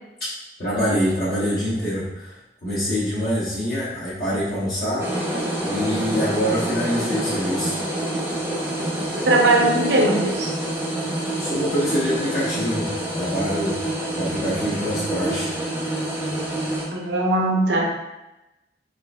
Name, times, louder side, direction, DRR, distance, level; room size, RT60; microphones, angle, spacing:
voice 1, 0.6-5.1 5.6-7.8 11.4-12.9 13.1-13.7 14.2-15.5, equal, 55° left, -9 dB, 0.9 m, -25 dB
sound 1, 5.0-16.9, right 1 dB, 10° right, 0.5 m, -27 dB
voice 2, 9.2-10.5 16.9-17.8, right 2 dB, 75° right, -1 dB, 0.7 m, -19 dB
3.8 x 3.3 x 2.3 m, 0.97 s
head